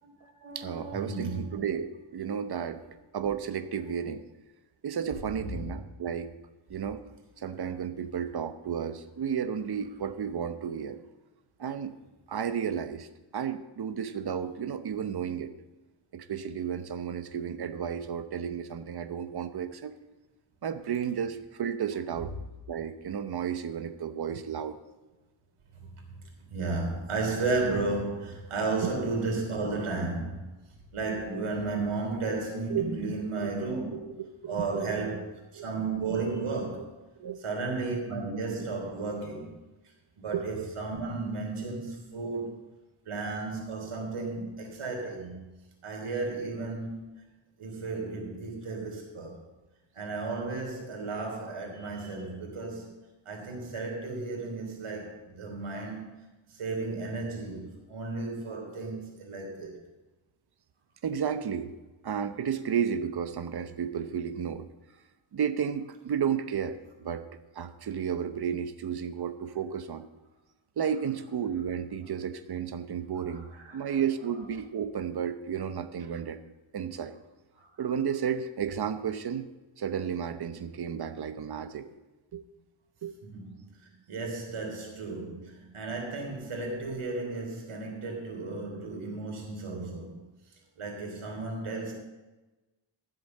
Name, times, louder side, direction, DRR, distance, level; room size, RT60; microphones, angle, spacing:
voice 1, 0.0-1.4 5.4-5.7 26.5-30.5 30.9-34.1 34.5-35.3 35.5-36.9 37.4-39.6 40.2-42.5 43.1-45.4 45.8-47.3 47.6-49.4 49.9-52.9 53.3-56.2 56.5-59.8 73.3-74.0 77.6-77.7 83.2-90.2 90.8-91.9, right 3 dB, 90° right, 1 dB, 3.4 m, -34 dB
voice 2, 0.5-2.8 3.1-4.2 4.8-6.3 6.7-7.0 7.4-11.0 11.6-12.0 12.3-13.1 13.3-15.5 16.1-19.9 20.6-22.3 22.7-24.8 28.8-28.9 32.7-33.5 33.9-35.1 35.6-35.7 36.3-36.4 36.8-36.9 37.2-37.4 40.3-40.5 59.6-59.7 61.0-61.7 62.0-64.7 65.3-67.2 67.5-70.1 70.8-73.5 73.7-76.4 76.7-77.2 77.8-79.5 79.8-81.9 82.3-82.4 83.0-83.1, right 8 dB, 50° right, 10 dB, 0.9 m, -32 dB
13.0 x 7.9 x 6.6 m, 1.1 s
wide cardioid pair, 130°, 49 cm